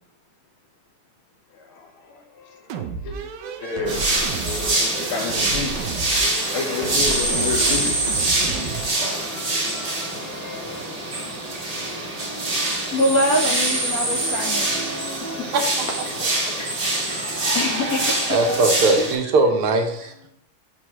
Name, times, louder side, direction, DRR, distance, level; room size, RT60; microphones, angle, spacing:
voice 1, 1.5-3.3 3.6-11.2, left 3 dB, 85° left, 4 dB, 1.8 m, -32 dB
sound 1, 2.7-8.9, right 6 dB, 70° right, 1.2 m, -32 dB
sound 2, 3.9-19.1, right 2 dB, 35° right, 1.8 m, -24 dB
voice 2, 12.9-14.9 15.2-15.5 16.6-16.7 17.1-17.2 17.5-19.2, left 1 dB, 65° left, 1 dB, 0.9 m, -25 dB
voice 3, 18.3-20.1, right 3 dB, 85° right, 5 dB, 1.8 m, -19 dB
6.2 x 6.2 x 2.9 m, 0.71 s
omnidirectional pair, 2.3 m